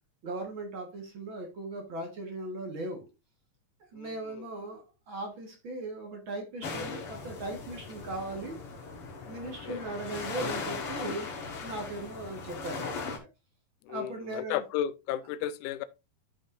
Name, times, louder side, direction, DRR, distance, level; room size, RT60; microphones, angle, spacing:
voice 1, 0.2-3.1 3.9-8.6 9.2-13.3 13.9-14.6, right 2 dB, 50° right, 1.6 m, -38 dB
sound 1, 6.6-13.2, left 4 dB, 50° left, 1.9 m, -38 dB
voice 2, 13.9-15.8, left 11 dB, 85° left, 1.8 m, -33 dB
12.5 x 5.3 x 2.5 m
omnidirectional pair, 4.0 m